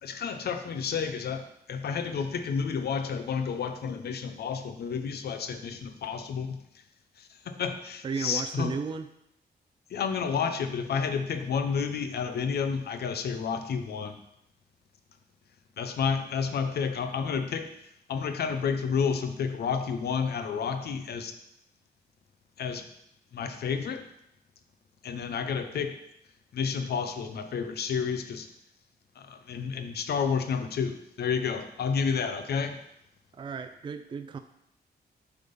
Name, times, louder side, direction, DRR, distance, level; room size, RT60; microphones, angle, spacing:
voice 1, 0.0-6.8 7.2-8.7 9.9-14.2 15.8-17.7 18.1-21.4 22.6-22.9 23.3-24.1 25.0-26.0 26.5-28.5 29.2-32.8, left 6 dB, 75° left, 9 dB, 0.7 m, -30 dB
voice 2, 8.0-9.1 33.3-34.4, right 5 dB, 30° right, 8 dB, 0.4 m, -34 dB
7.8 x 3.6 x 5.3 m, 0.79 s
wide cardioid pair, 120°, 17 cm